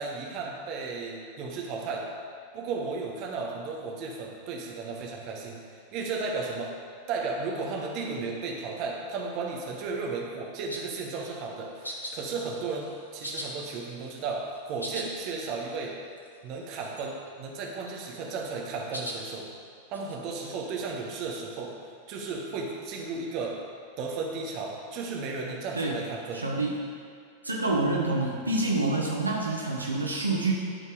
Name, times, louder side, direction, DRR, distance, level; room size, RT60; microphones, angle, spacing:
voice 1, 0.0-2.1 2.5-6.8 7.1-16.0 16.4-19.5 19.9-21.7 22.1-23.6 24.0-26.4, right 4 dB, 40° right, 0 dB, 1.3 m, -34 dB
sound 1, 10.7-11.0 11.8-12.2 12.5-12.9 13.2-14.2 14.6-15.1 15.4-15.5 15.7-15.8 16.2-16.5 16.8-17.3 17.7-18.3 18.9-19.2 19.9-20.1, equal, 85° left, 1.1 m, -39 dB
voice 2, 26.3-26.7 27.4-30.5, right 2 dB, 80° right, -1 dB, 0.9 m, -27 dB
11.5 x 4.4 x 4.9 m, 2.3 s
figure-of-eight pair, 90°, 0 cm